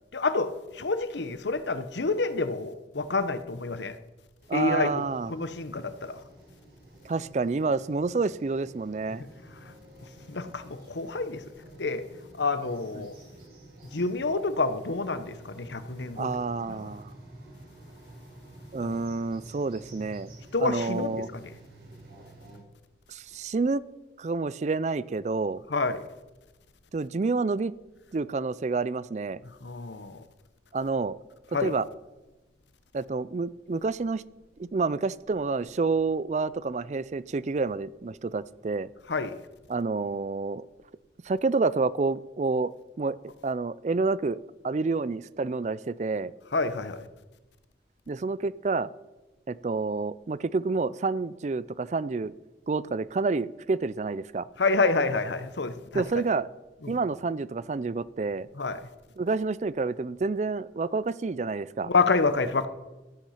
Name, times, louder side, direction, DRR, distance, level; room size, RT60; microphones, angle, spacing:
voice 1, 0.1-4.0 4.5-4.9 5.3-6.2 9.2-9.3 9.6-9.7 10.3-11.4 11.8-12.1 12.3-13.1 13.9-16.3 16.6-16.9 18.8-19.0 20.5-21.5 25.7-26.1 29.6-30.2 31.5-31.7 39.1-39.4 46.5-47.1 54.6-56.0 56.8-57.0 58.5-58.8 61.8-62.7, left 3 dB, 80° left, 0.9 m, -28 dB
sound 1, 4.4-22.6, right 1 dB, 55° right, 5.0 m, -50 dB
voice 2, 4.5-5.3 7.0-9.2 13.0-13.1 16.2-17.1 18.7-20.3 20.6-21.3 23.1-23.8 24.2-25.6 26.9-27.7 28.1-29.4 30.7-31.2 31.6-31.8 32.9-34.2 34.6-38.9 39.7-40.7 41.2-42.7 43.0-43.2 43.4-44.4 44.6-46.3 48.1-48.9 49.5-52.3 52.7-54.5 55.9-56.5 56.9-58.5 59.2-61.9, right 3 dB, 40° right, 0.4 m, -28 dB
14.5 x 9.1 x 5.8 m
head